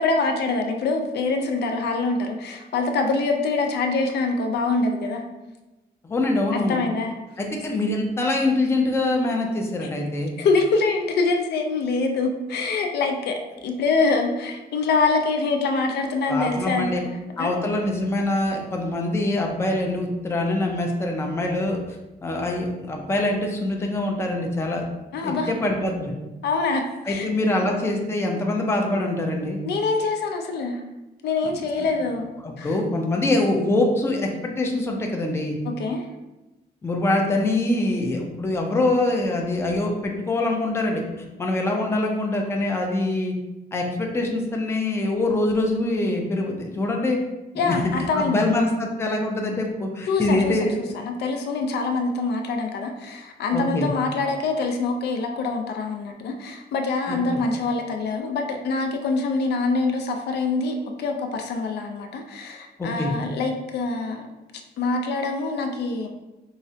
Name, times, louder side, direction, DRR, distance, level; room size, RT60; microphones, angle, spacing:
voice 1, 0.0-5.2 6.5-7.2 9.8-9.9 10.4-17.5 25.1-25.5 26.4-27.3 29.6-30.8 31.2-32.2 32.6-32.8 35.7-36.1 47.6-48.4 50.1-64.3 64.8-66.1, left 3 dB, 80° left, 4 dB, 0.4 m, -25 dB
voice 2, 6.0-6.8 7.4-10.3 16.3-17.0 17.4-21.8 22.2-24.8 25.2-26.1 27.1-29.6 31.4-31.5 32.4-35.6 36.8-41.0 41.4-43.3 43.7-47.2 47.6-47.8 48.1-50.7 53.5-53.9 57.1-57.2 62.8-63.1, left 2 dB, 15° left, 1 dB, 0.4 m, -24 dB
4.6 x 2.1 x 2.7 m, 1.0 s
wide cardioid pair, 155°, 17 cm